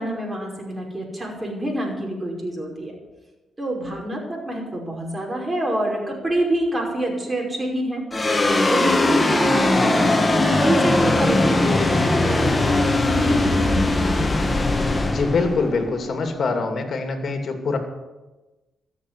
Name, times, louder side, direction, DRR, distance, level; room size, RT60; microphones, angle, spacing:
voice 1, 0.0-2.9 3.6-10.3 10.6-12.9 13.2-13.8, right 1 dB, 20° right, -1 dB, 5.4 m, -26 dB
sound 1, 8.1-16.6, left 2 dB, 25° left, 1.6 m, -20 dB
voice 2, 15.1-17.8, left 4 dB, 55° left, 5 dB, 2.7 m, -24 dB
13.5 x 7.2 x 9.6 m, 1.1 s
cardioid pair, 70°, 0 cm